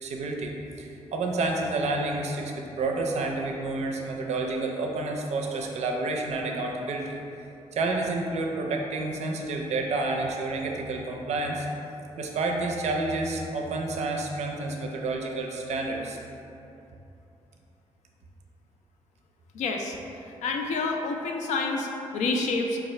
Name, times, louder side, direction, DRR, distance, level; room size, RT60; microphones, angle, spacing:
voice 1, 0.0-7.2 7.7-11.7 12.2-16.2, right 2 dB, 65° right, 1 dB, 0.4 m, -29 dB
voice 2, 19.5-20.0 20.4-22.8, left 3 dB, 80° left, 2 dB, 0.4 m, -28 dB
4.5 x 2.3 x 3.1 m, 2.9 s
supercardioid pair, 60°, 12 cm